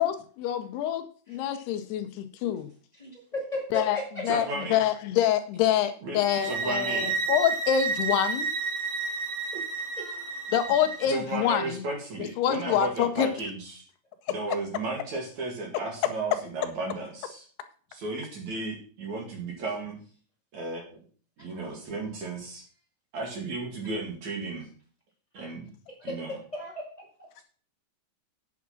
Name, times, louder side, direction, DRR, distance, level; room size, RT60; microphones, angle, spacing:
voice 1, 0.0-2.7 3.7-8.5 10.5-11.8 12.2-13.3, left 10 dB, 80° left, 9 dB, 2.6 m, -26 dB
voice 2, 3.0-4.0 10.0-10.3 26.0-27.1, left 1 dB, 40° left, -3 dB, 0.5 m, -35 dB
voice 3, 4.3-4.8 6.0-7.2 11.0-13.9 14.3-17.5 17.9-20.0 20.5-21.0 21.4-22.6 23.1-24.7 25.3-25.7 26.0-26.4, right 3 dB, 50° right, 0 dB, 3.0 m, -34 dB
sound 1, 6.2-11.1, right 4 dB, 65° right, 2.2 m, -31 dB
8.4 x 7.8 x 5.9 m, 0.43 s
omnidirectional pair, 4.9 m